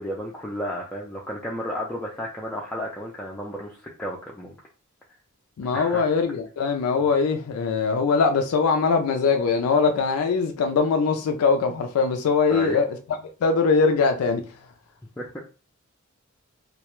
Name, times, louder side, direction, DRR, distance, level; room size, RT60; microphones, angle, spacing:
voice 1, 0.0-4.6 5.7-6.0 12.5-12.8 15.2-15.4, equal, 5° left, 0.3 m, -33 dB
voice 2, 5.6-14.6, left 4 dB, 85° left, 0.4 m, -22 dB
2.2 x 2.1 x 2.9 m
head